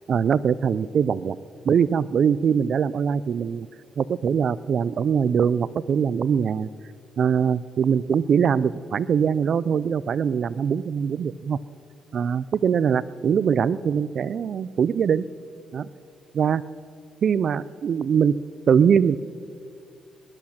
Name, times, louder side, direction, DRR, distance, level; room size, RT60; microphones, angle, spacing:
voice 1, 0.1-1.4 1.6-3.7 4.0-6.7 7.2-11.6 12.1-15.2 15.7-15.9 16.3-16.6 17.2-18.3 18.7-19.2, right 7 dB, 55° right, 19 dB, 0.4 m, -22 dB
19.5 x 10.5 x 5.8 m, 2.3 s
cardioid pair, 90°, 0 cm